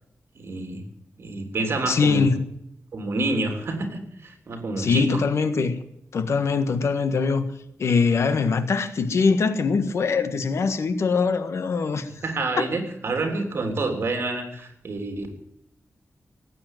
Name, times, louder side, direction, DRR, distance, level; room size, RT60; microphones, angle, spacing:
voice 1, 0.3-0.8 1.2-2.3 2.9-5.2 12.1-15.3, right 2 dB, 55° right, 3.4 m, -28 dB
voice 2, 1.9-2.4 4.8-5.7 6.1-7.4 7.8-12.1 12.6-12.7, left 4 dB, 70° left, 1.5 m, -22 dB
18.0 x 8.8 x 9.1 m
wide cardioid pair, 145°, 5 cm